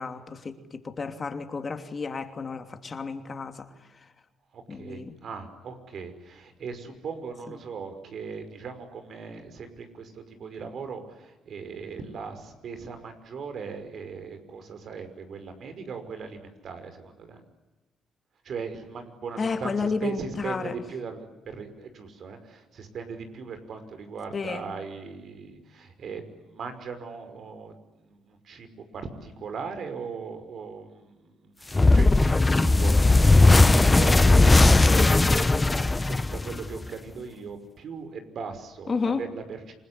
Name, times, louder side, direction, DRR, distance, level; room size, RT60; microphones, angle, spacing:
voice 1, 0.0-4.1 4.7-5.1 7.5-7.6 19.4-20.8 24.3-24.6 34.9-35.2 38.9-39.2, left 4 dB, 35° left, 7 dB, 3.0 m, -32 dB
voice 2, 4.5-17.4 18.4-39.7, right 5 dB, 60° right, 8 dB, 5.6 m, -39 dB
sound 1, 31.7-36.9, left 2 dB, 20° left, 1.0 m, -18 dB
28.0 x 21.5 x 9.9 m, 1.1 s
cardioid pair, 90°, 0 cm